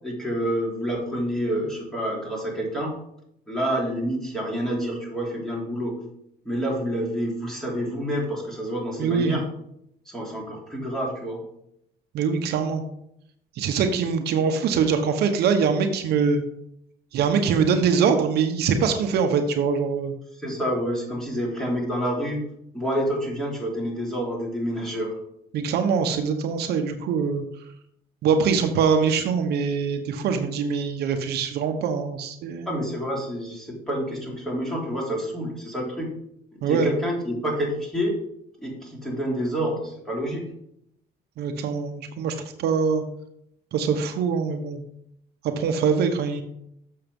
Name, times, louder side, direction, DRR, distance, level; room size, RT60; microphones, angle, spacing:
voice 1, 0.0-3.0 3.5-6.0 6.4-9.4 10.0-11.4 20.4-22.4 22.7-25.2 32.6-36.1 36.6-38.2 38.6-40.4, equal, 5° left, -3 dB, 3.6 m, -28 dB
voice 2, 9.0-9.4 12.1-12.8 13.6-16.4 17.1-20.1 25.5-27.4 28.2-32.7 36.6-36.9 41.4-43.0 43.7-44.8 45.4-46.4, right 6 dB, 75° right, 6 dB, 1.0 m, -23 dB
7.2 x 6.7 x 5.3 m, 0.75 s
cardioid pair, 110°, 17 cm